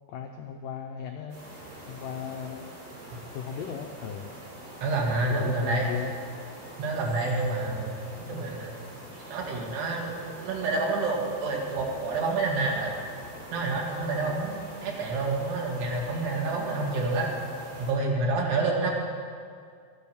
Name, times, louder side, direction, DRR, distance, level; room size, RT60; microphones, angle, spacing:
voice 1, 0.1-1.4 1.9-2.7 3.3-4.3 5.2-6.2 14.3-14.4, left 8 dB, 80° left, 4 dB, 1.9 m, -36 dB
sound 1, 1.3-17.9, right 1 dB, 60° right, 4.7 m, -45 dB
voice 2, 4.8-5.9 6.8-8.0 8.3-8.7 9.3-13.0 13.5-17.3 17.8-18.9, right 3 dB, 80° right, -1 dB, 4.0 m, -28 dB
13.5 x 9.1 x 7.0 m, 2.1 s
omnidirectional pair, 4.7 m